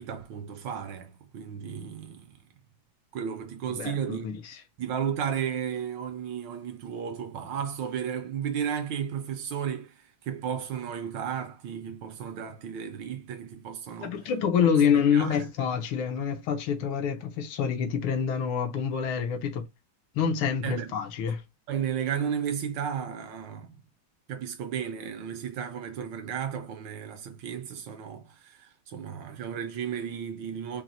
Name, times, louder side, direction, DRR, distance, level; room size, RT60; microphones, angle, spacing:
voice 1, 0.0-2.3 3.1-4.3 4.8-14.2 15.1-15.4 20.6-20.9 21.7-23.8 24.3-30.8, right 8 dB, 75° right, 1.2 m, -34 dB
voice 2, 3.7-4.6 14.0-19.6 20.1-21.4, left 7 dB, 80° left, 1.6 m, -27 dB
4.5 x 2.0 x 3.9 m
omnidirectional pair, 2.3 m